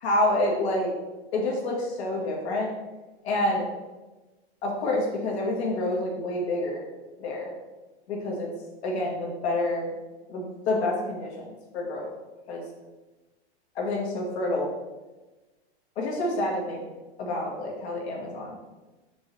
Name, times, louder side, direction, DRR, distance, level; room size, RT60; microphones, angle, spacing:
voice 1, 0.0-0.9 1.3-2.7 3.2-3.7 4.6-6.8 7.2-7.5 8.1-8.5 8.8-9.9 10.3-12.1 12.5-12.6 13.8-14.7 16.0-16.8 17.2-18.6, left 1 dB, 70° left, -2 dB, 2.0 m, -28 dB
6.5 x 5.2 x 3.2 m, 1.2 s
hypercardioid pair, 120°, 33 cm